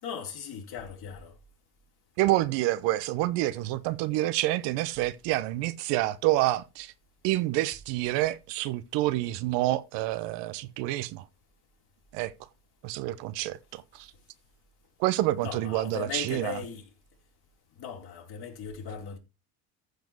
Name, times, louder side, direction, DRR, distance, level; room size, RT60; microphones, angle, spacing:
voice 1, 0.0-1.3 15.4-16.9 17.8-19.2, left 7 dB, 50° left, 4.3 m, -38 dB
voice 2, 2.2-6.9 7.2-11.3 12.1-12.3 12.8-14.1 15.0-16.6, right 16 dB, 65° right, 1.1 m, -28 dB
14.5 x 5.2 x 4.6 m
supercardioid pair, 90°, 46 cm